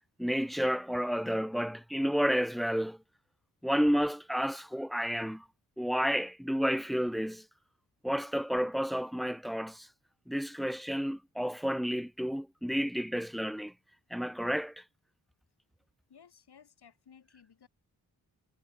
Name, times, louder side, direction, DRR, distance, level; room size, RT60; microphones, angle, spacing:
voice 1, 0.2-3.0 3.6-5.4 5.8-7.4 8.0-9.9 10.3-13.7 14.1-14.8, equal, ahead, 1.4 m, -31 dB
voice 2, 16.1-17.7, left 7 dB, 70° left, 6.9 m, -58 dB
cardioid pair, 55°, 40 cm